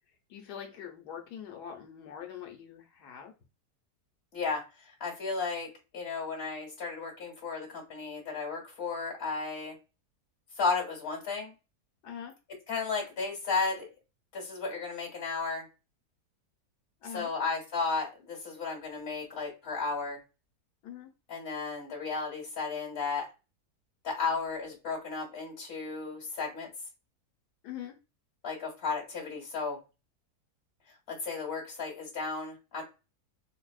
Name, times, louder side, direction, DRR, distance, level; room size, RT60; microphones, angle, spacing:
voice 1, 0.3-3.3 12.0-12.3 17.0-17.3 20.8-21.1 27.6-27.9, left 9 dB, 85° left, 2 dB, 1.3 m, -43 dB
voice 2, 4.3-9.8 10.6-11.5 12.7-13.9 14.3-15.7 17.1-20.2 21.3-23.2 24.0-26.7 28.4-29.8 31.1-32.8, left 4 dB, 40° left, -2 dB, 1.6 m, -34 dB
5.1 x 2.0 x 2.3 m, 0.29 s
omnidirectional pair, 1.7 m